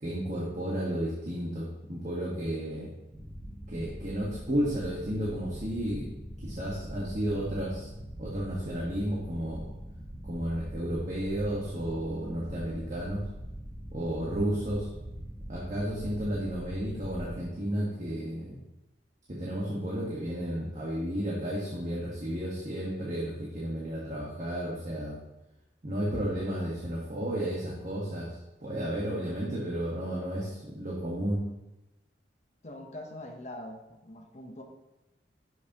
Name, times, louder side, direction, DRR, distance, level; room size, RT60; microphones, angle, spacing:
voice 1, 0.0-2.9 3.7-6.1 6.4-7.9 8.2-9.7 10.2-13.2 13.9-14.9 15.5-18.6 19.3-25.2 25.8-31.4, equal, 40° right, -5 dB, 1.5 m, -32 dB
sound 1, 3.1-17.5, equal, 15° right, 1.4 m, -42 dB
voice 2, 32.6-34.6, left 1 dB, 40° left, 2 dB, 0.9 m, -43 dB
11.0 x 6.4 x 3.0 m, 0.97 s
head